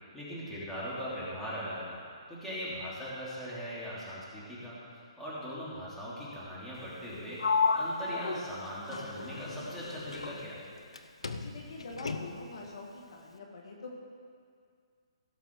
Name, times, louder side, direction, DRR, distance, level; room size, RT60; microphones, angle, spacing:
voice 1, 0.1-2.0 2.3-7.4 7.7-10.6, equal, ahead, -10 dB, 3.1 m, -40 dB
Sliding door, 7.4-11.0 11.2-12.6, left 4 dB, 85° left, 0.7 m, -33 dB
voice 2, 11.4-13.9, left 3 dB, 60° left, 0 dB, 1.7 m, -45 dB
17.0 x 6.0 x 4.7 m, 2.2 s
hypercardioid pair, 140°, 3 cm